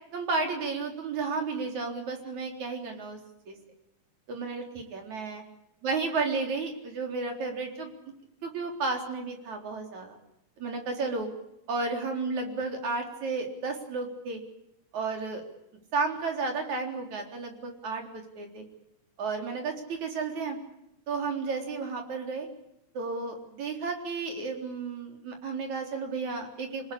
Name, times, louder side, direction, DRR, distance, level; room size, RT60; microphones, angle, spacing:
voice 1, 0.1-3.2 3.5-3.6 4.3-5.4 5.8-7.9 8.4-10.2 10.6-11.3 11.7-14.4 14.9-15.4 15.9-18.6 19.2-20.6 21.1-22.5 22.9-26.9, right 4 dB, 60° right, 3 dB, 5.2 m, -32 dB
26.5 x 19.5 x 8.7 m, 0.82 s
omnidirectional pair, 3.7 m